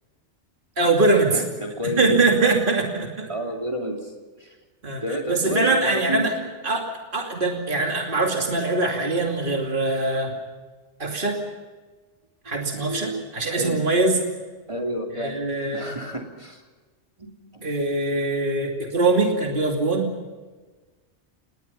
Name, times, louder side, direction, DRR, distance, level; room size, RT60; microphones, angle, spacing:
voice 1, 0.8-1.4 1.8-3.3 4.8-6.3 6.6-6.9 7.1-10.3 11.0-11.4 12.4-14.2 15.1-15.9 17.6-20.1, right 3 dB, 45° right, 1 dB, 2.8 m, -22 dB
voice 2, 1.3-2.3 3.3-4.1 4.4-4.5 5.0-6.2 12.8-13.8 14.7-15.4 15.7-16.6 17.2-17.7, equal, 25° right, 1 dB, 3.2 m, -30 dB
29.0 x 20.5 x 5.7 m, 1.3 s
omnidirectional pair, 1.2 m